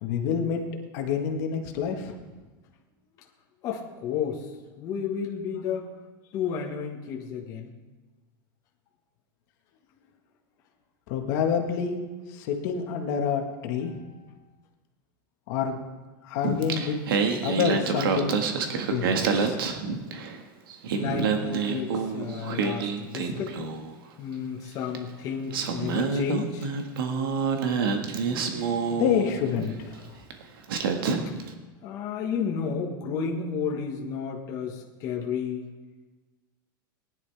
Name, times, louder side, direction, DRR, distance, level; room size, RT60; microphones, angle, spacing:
voice 1, 0.0-0.6 0.9-2.1 11.1-12.0 12.3-14.0 15.5-15.8 16.2-17.0 17.4-18.4 18.9-19.6 28.9-30.1, left 7 dB, 50° left, 3 dB, 1.5 m, -28 dB
voice 2, 3.6-4.5 4.8-5.9 6.3-7.7 20.9-23.6 24.2-26.7 31.8-35.7, left 6 dB, 30° left, -1 dB, 1.4 m, -32 dB
Singing, 16.4-20.4 20.7-23.9 25.0-25.1 25.5-29.7 30.3-30.4 30.7-31.5, right 5 dB, 85° right, 1.7 m, -27 dB
19.5 x 11.0 x 3.4 m, 1.3 s
supercardioid pair, 165°, 12 cm